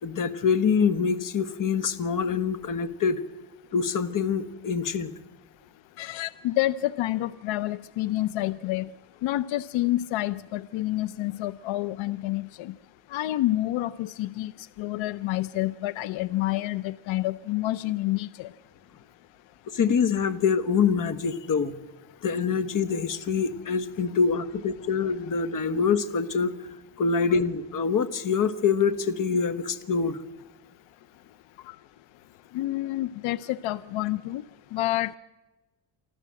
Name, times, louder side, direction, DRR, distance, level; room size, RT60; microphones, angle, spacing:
voice 1, 0.0-3.2 3.7-5.1 19.7-21.7 22.2-26.5 27.0-30.2, left 6 dB, 40° left, 13 dB, 1.5 m, -25 dB
voice 2, 6.0-8.9 9.2-12.7 13.1-14.5 14.8-18.5 31.7-31.8 32.5-34.4 34.7-35.2, left 16 dB, 70° left, 18 dB, 0.7 m, -28 dB
25.0 x 14.0 x 7.6 m, 1.1 s
cardioid pair, 120°, 48 cm